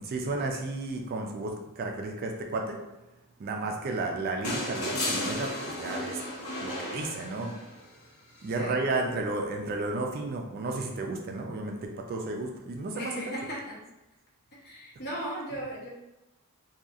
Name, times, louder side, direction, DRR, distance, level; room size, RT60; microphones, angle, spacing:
voice 1, 0.0-2.8 3.4-6.2 6.6-7.5 8.4-13.1, right 2 dB, 45° right, 2 dB, 0.3 m, -32 dB
sound 1, 4.4-7.8 9.3-9.4, left 1 dB, 75° left, 0.8 m, -33 dB
voice 2, 12.9-13.7 14.6-15.9, right 1 dB, 45° left, -6 dB, 1.0 m, -37 dB
2.8 x 2.3 x 2.4 m, 0.96 s
head